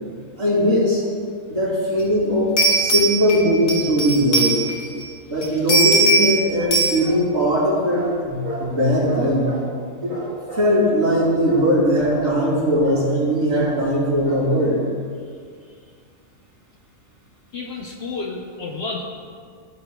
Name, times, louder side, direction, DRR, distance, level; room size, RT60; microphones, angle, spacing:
voice 1, 0.4-1.0 1.5-4.5 5.3-9.5 10.0-10.2 10.5-14.8, equal, 50° right, -6 dB, 2.6 m, -19 dB
sound 1, 2.0-2.1 2.6-5.0 5.4-6.4 6.7-7.0, right 3 dB, 75° left, 1.5 m, -19 dB
sound 2, 6.5-7.3 7.9-8.8 9.1-9.8 10.1-10.8 11.1-11.8 12.1-12.4 12.8-13.2 13.6-13.9 14.2-14.6, right 1 dB, 25° right, 1.5 m, -35 dB
voice 2, 17.5-19.0, left 3 dB, 55° left, -1 dB, 0.8 m, -31 dB
13.5 x 6.4 x 2.2 m, 2.1 s
omnidirectional pair, 1.4 m